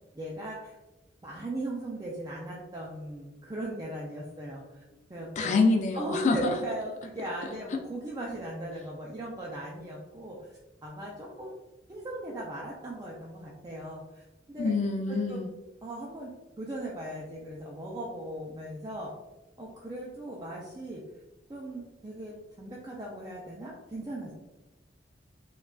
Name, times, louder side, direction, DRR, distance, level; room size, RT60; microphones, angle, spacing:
voice 1, 0.1-0.8 1.2-4.8 5.1-5.5 5.9-10.5 10.8-11.5 11.9-14.8 15.1-15.4 15.8-16.3 16.6-19.1 19.6-21.0 21.5-24.3, right 1 dB, 20° right, -4 dB, 0.5 m, -38 dB
voice 2, 5.4-6.5 14.6-15.5, left 3 dB, 40° left, 3 dB, 0.4 m, -26 dB
4.6 x 2.4 x 2.3 m, 1.0 s
head